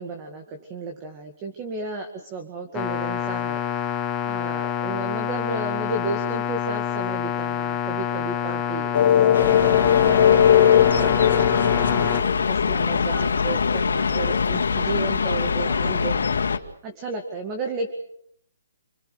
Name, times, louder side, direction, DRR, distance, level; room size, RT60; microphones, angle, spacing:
voice 1, 0.0-17.9, right 3 dB, 20° right, 5 dB, 2.2 m, -33 dB
sound 1, 2.7-12.2, left 8 dB, 15° left, 1.3 m, -27 dB
sound 2, 8.9-14.7, left 10 dB, 45° left, 3.3 m, -20 dB
sound 3, 9.3-16.6, left 5 dB, 80° left, 2.1 m, -24 dB
28.5 x 22.5 x 6.7 m, 0.69 s
hypercardioid pair, 165°, 0 cm